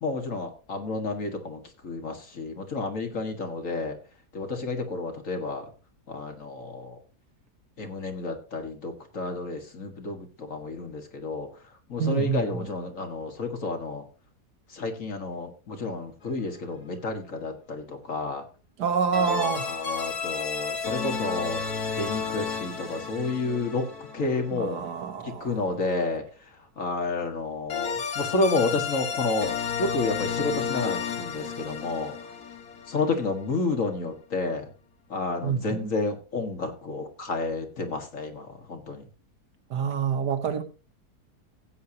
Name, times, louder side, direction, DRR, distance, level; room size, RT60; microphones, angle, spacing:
voice 1, 0.0-4.0 4.3-5.7 6.1-7.0 7.8-11.5 11.9-14.0 14.7-18.5 19.1-21.6 22.0-23.9 24.1-24.8 25.2-26.5 26.8-32.1 32.9-34.7 35.1-39.0, left 3 dB, 50° left, 2.1 m, -30 dB
voice 2, 12.0-12.4 18.8-19.7 24.5-25.6 35.4-35.9 39.7-40.6, right 6 dB, 85° right, 1.9 m, -27 dB
sound 1, 16.2-16.7 19.1-25.0 27.7-33.6, left 6 dB, 70° left, 1.9 m, -32 dB
16.0 x 8.3 x 2.9 m
omnidirectional pair, 1.7 m